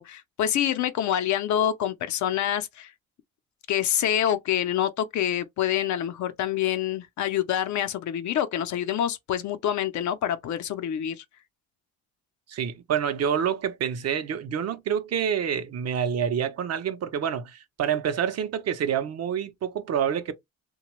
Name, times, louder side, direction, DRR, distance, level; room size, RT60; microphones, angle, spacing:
voice 1, 0.0-2.9 3.7-11.2, left 10 dB, 70° left, 0.6 m, -26 dB
voice 2, 12.5-20.3, right 8 dB, 55° right, 0.6 m, -27 dB
2.9 x 2.3 x 3.0 m
cardioid pair, 90°, 30 cm